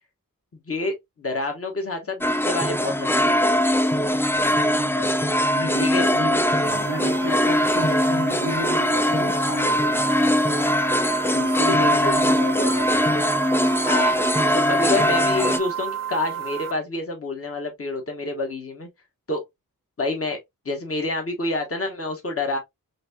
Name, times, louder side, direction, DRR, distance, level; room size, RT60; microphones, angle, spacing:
voice 1, 0.7-3.4 5.8-6.0 11.6-12.1 12.6-12.7 13.8-14.2 14.5-18.9 19.3-19.4 20.0-20.4 20.6-22.6, left 2 dB, 40° left, 1.2 m, -28 dB
sound 1, 2.2-15.6, equal, 5° left, 0.4 m, -21 dB
voice 2, 4.3-5.1 5.5-10.2 11.3-13.0, left 1 dB, 80° left, 1.5 m, -32 dB
sound 2, 6.6-16.7, right 9 dB, 50° right, 0.5 m, -32 dB
5.1 x 2.7 x 2.2 m
wide cardioid pair, 60°, 35 cm